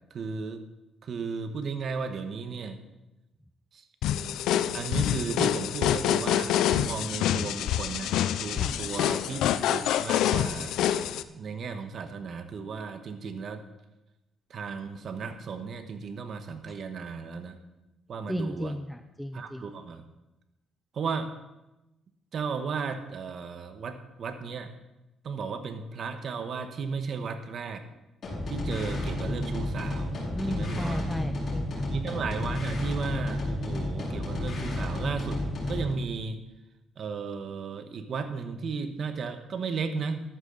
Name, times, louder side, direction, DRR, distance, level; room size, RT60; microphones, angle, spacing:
voice 1, 0.1-0.6 1.0-2.8 3.7-3.8 4.7-9.4 9.7-10.8 11.3-13.6 14.5-17.6 18.1-18.7 19.3-20.0 20.9-21.3 22.3-24.7 25.2-27.8 28.5-30.2 30.5-31.1 31.8-36.4 37.0-40.2, right 5 dB, 60° right, 7 dB, 1.4 m, -35 dB
sound 1, 4.0-11.2, left 11 dB, 85° left, 0.5 m, -26 dB
voice 2, 18.3-19.7 30.3-31.8, equal, ahead, 7 dB, 0.7 m, -34 dB
sound 2, 28.2-35.9, left 1 dB, 50° left, 5.4 m, -31 dB
14.0 x 11.5 x 4.1 m, 0.95 s
cardioid pair, 90°, 0 cm